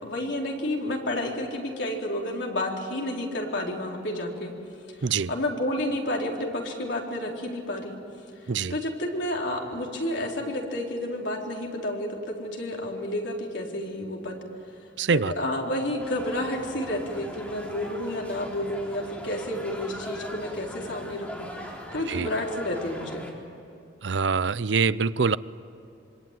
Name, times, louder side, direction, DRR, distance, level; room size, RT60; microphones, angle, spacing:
voice 1, 0.0-4.5 5.3-8.0 8.4-14.4 15.1-21.5 21.9-23.3, left 1 dB, 70° left, 0 dB, 4.2 m, -30 dB
voice 2, 5.0-5.3 8.5-8.8 15.0-15.3 22.1-22.3 24.0-25.4, right 5 dB, 70° right, 17 dB, 0.6 m, -24 dB
sound 1, 16.0-23.3, equal, 10° left, 4.0 m, -40 dB
26.0 x 24.5 x 9.2 m, 2.6 s
head